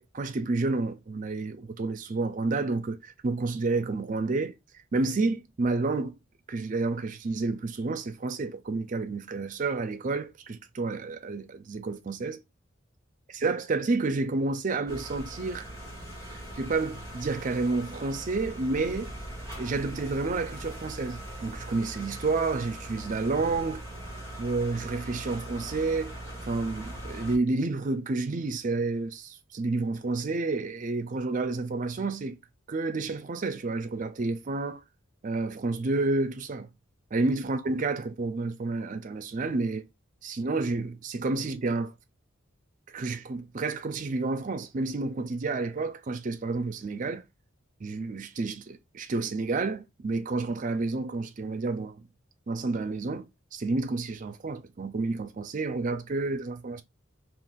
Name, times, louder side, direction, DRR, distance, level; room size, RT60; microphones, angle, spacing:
voice 1, 0.0-4.5 4.9-6.2 6.5-12.4 13.3-15.7 16.5-19.1 19.6-23.8 24.4-26.1 26.5-32.4 32.7-34.8 35.2-36.7 37.1-39.9 40.2-41.9 42.9-47.2 47.8-52.0 52.5-53.3 53.5-56.8, right 3 dB, 40° right, 0.4 m, -30 dB
sound 1, 14.9-27.4, right 1 dB, 15° left, 1.2 m, -40 dB
2.5 x 2.5 x 3.6 m
head